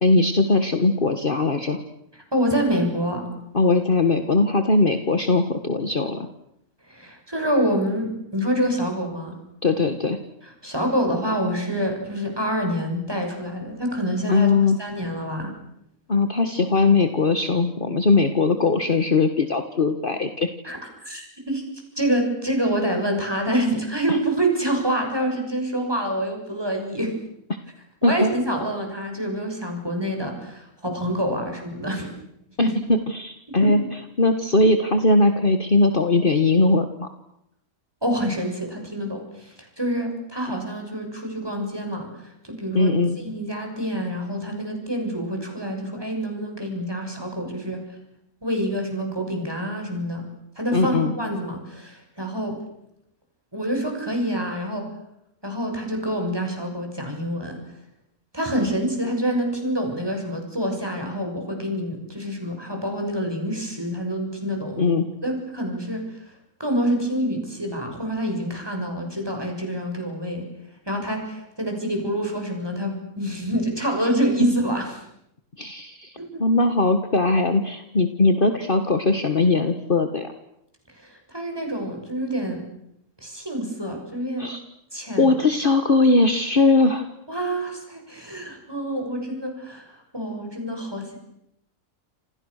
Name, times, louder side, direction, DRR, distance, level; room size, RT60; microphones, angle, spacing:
voice 1, 0.0-1.8 3.5-6.3 9.6-10.2 14.3-14.8 16.1-20.5 28.0-28.3 32.6-37.1 42.7-43.2 50.7-51.1 64.8-65.0 75.6-76.1 76.4-80.3 84.4-84.6 85.2-87.1, left 3 dB, 40° left, 7 dB, 1.7 m, -20 dB
voice 2, 2.1-3.2 6.9-9.4 10.6-14.5 14.8-15.5 20.6-20.8 21.0-21.6 22.0-27.1 28.0-32.1 32.6-32.7 33.6-33.8 38.0-47.8 48.4-50.2 50.6-52.6 53.5-54.9 55.4-57.6 58.3-66.2 66.6-70.5 70.9-75.0 76.2-76.4 80.9-82.6 83.2-84.5 84.9-85.3 87.3-91.2, equal, 15° right, 3 dB, 7.0 m, -27 dB
28.5 x 28.5 x 6.6 m, 0.80 s
omnidirectional pair, 1.5 m